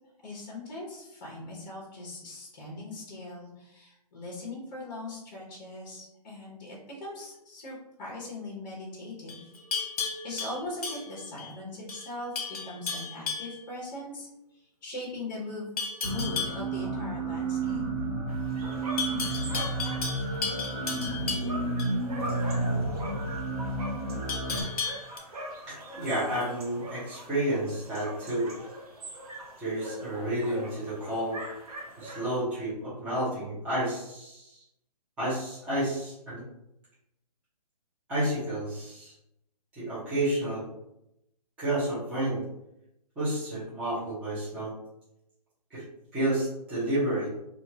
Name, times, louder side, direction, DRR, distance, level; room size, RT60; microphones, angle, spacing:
voice 1, 0.2-9.5 10.2-15.7 16.0-17.8, left 2 dB, 30° left, -4 dB, 0.9 m, -40 dB
Livestock farm animals working animals, 9.3-11.5 11.9-12.1 12.3-13.6 15.8-16.6 19.0-21.9 24.3-25.2, left 5 dB, 60° left, 0.8 m, -34 dB
sound 1, 16.0-24.6, right 2 dB, 25° right, 1.0 m, -31 dB
sound 2, 18.3-32.4, right 1 dB, 65° right, 0.8 m, -43 dB
voice 2, 25.7-28.5 29.6-31.4 32.0-34.6 35.2-36.4 38.1-39.1 39.8-40.6 41.6-42.4 43.2-44.7 45.7-45.8 46.1-47.3, right 1 dB, 5° right, -12 dB, 0.7 m, -30 dB
3.0 x 2.4 x 2.8 m, 0.85 s
hypercardioid pair, 165°, 21 cm